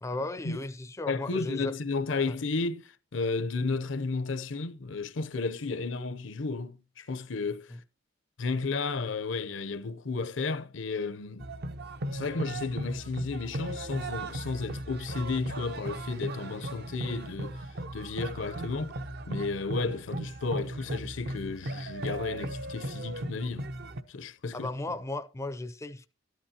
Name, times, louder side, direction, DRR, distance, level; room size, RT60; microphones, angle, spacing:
voice 1, 0.0-1.7 2.3-2.4 7.7-7.8 24.5-26.1, left 2 dB, 15° left, 0.5 m, -35 dB
voice 2, 1.1-7.7 8.4-11.5 12.1-17.6 17.9-19.0 19.3-23.7 24.1-25.0, left 3 dB, 70° left, 0.7 m, -33 dB
sound 1, 11.4-24.0, right 1 dB, 55° right, 0.7 m, -37 dB
13.0 x 11.5 x 2.8 m
head